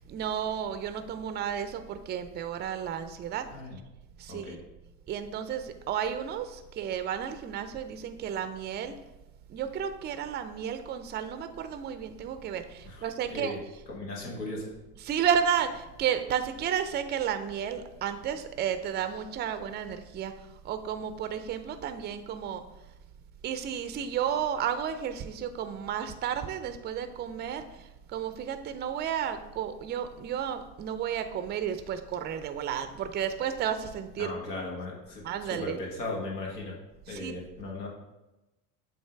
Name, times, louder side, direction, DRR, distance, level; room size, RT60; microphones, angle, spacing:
voice 1, 0.0-3.4 4.2-4.6 5.1-8.9 9.5-13.6 15.1-20.3 20.6-22.6 23.4-34.3 35.2-35.8 37.1-37.3, right 8 dB, 25° right, 9 dB, 0.4 m, -32 dB
voice 2, 3.5-3.8 4.3-4.6 12.8-13.6 13.9-14.7 34.2-36.7 37.1-37.9, left 2 dB, 85° left, -1 dB, 1.8 m, -37 dB
7.3 x 2.8 x 4.6 m, 1.0 s
hypercardioid pair, 85°, 47 cm